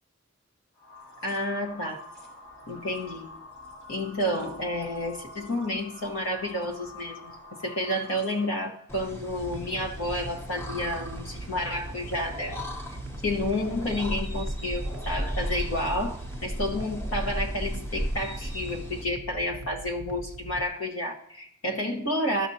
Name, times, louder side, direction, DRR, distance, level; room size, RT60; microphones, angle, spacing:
sound 1, 0.8-8.8, left 2 dB, 55° left, 3.1 m, -46 dB
voice 1, 1.2-2.0 2.7-3.4 3.9-7.3 7.6-12.6 13.2-22.5, left 1 dB, 70° left, 0 dB, 1.3 m, -30 dB
sound 2, 8.9-19.0, equal, 10° left, 0.7 m, -35 dB
sound 3, 9.4-20.7, right 2 dB, 80° right, 0.5 m, -42 dB
13.5 x 6.0 x 2.8 m, 0.72 s
head